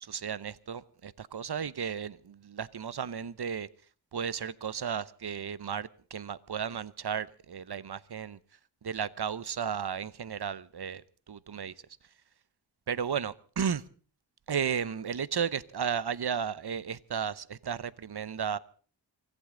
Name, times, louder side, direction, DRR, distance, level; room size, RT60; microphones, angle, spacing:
voice 1, 0.0-3.7 4.1-8.4 8.8-11.0 11.3-11.7 12.9-13.8 14.5-18.6, right 7 dB, 55° right, 0.9 m, -34 dB
24.5 x 15.5 x 3.8 m
wide cardioid pair, 60°, 47 cm